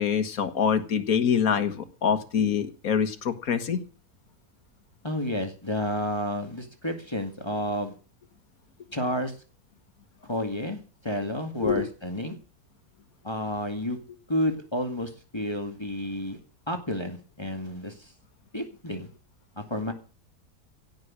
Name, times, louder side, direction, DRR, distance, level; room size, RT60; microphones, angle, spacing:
voice 1, 0.0-3.8 11.6-11.8, left 7 dB, 70° left, 10 dB, 1.9 m, -25 dB
voice 2, 5.0-8.0 8.9-9.3 10.3-12.3 13.2-14.0 14.3-16.4 16.7-18.1 18.5-19.1 19.6-19.9, left 1 dB, 15° left, 5 dB, 2.1 m, -30 dB
16.5 x 6.5 x 9.9 m, 0.37 s
omnidirectional pair, 1.6 m